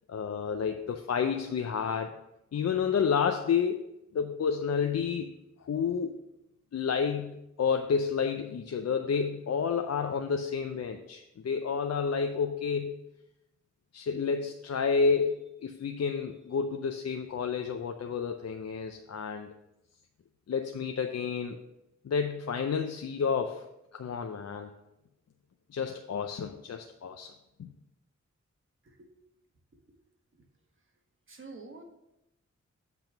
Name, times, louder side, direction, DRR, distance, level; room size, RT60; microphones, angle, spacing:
voice 1, 0.1-2.1 2.5-3.8 4.1-5.3 5.6-6.2 6.7-12.9 13.9-19.5 20.5-21.6 22.0-23.7 23.9-24.7 25.7-27.3 27.6-27.7, left 6 dB, 60° left, 5 dB, 0.6 m, -30 dB
voice 2, 31.3-31.8, right 3 dB, 40° right, 3 dB, 1.4 m, -47 dB
8.0 x 3.5 x 5.9 m, 0.89 s
cardioid pair, 55°, 30 cm